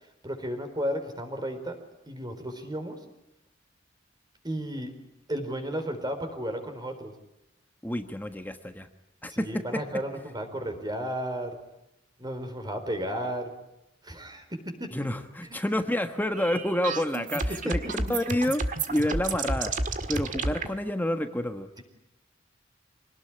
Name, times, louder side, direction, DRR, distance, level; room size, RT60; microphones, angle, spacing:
voice 1, 0.2-1.8 2.1-3.0 4.4-5.0 5.3-7.1 9.3-11.6 12.2-13.5 14.0-14.9 15.4-15.6 17.6-17.7, equal, 20° right, 6 dB, 4.2 m, -33 dB
voice 2, 7.8-8.9 9.2-9.8 14.9-19.7 20.1-21.7, left 1 dB, 10° left, 7 dB, 1.3 m, -29 dB
sound 1, 16.3-20.7, right 3 dB, 45° right, 1.8 m, -31 dB
26.0 x 19.0 x 9.9 m, 0.91 s
head